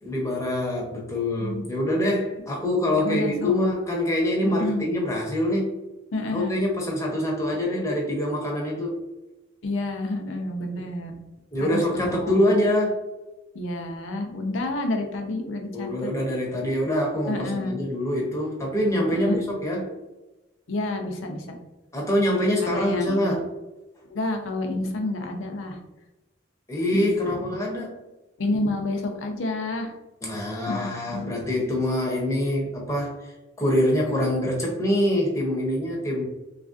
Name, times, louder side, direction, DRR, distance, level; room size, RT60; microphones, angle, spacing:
voice 1, 0.0-5.7 6.3-9.0 11.5-13.0 15.7-19.9 21.9-23.5 26.7-27.9 30.2-33.3 33.6-36.2, left 1 dB, 15° left, -2 dB, 0.7 m, -25 dB
voice 2, 3.0-3.6 4.4-4.8 6.1-6.6 9.6-11.2 11.6-12.5 13.5-16.1 17.3-17.8 18.9-19.4 20.7-21.4 22.6-23.3 24.1-25.8 26.9-27.4 28.4-29.9 30.7-31.3, left 2 dB, 80° left, 4 dB, 0.6 m, -29 dB
3.2 x 2.4 x 2.5 m, 1.0 s
head